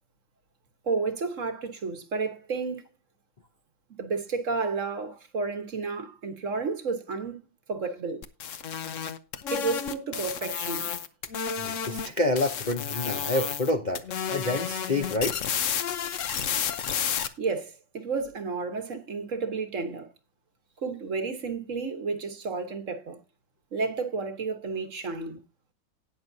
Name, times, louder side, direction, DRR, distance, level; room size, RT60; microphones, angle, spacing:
voice 1, 0.8-2.8 4.0-7.4 7.7-8.3 9.5-10.9 17.4-20.1 20.8-23.2 23.7-25.4, right 4 dB, 45° right, 1.4 m, -31 dB
sound 1, 8.2-12.1 12.4-13.7 14.0-17.3, left 8 dB, 55° left, 0.9 m, -31 dB
voice 2, 11.6-14.0 14.3-15.4, left 2 dB, 80° left, 0.4 m, -28 dB
18.5 x 6.3 x 2.7 m
omnidirectional pair, 2.2 m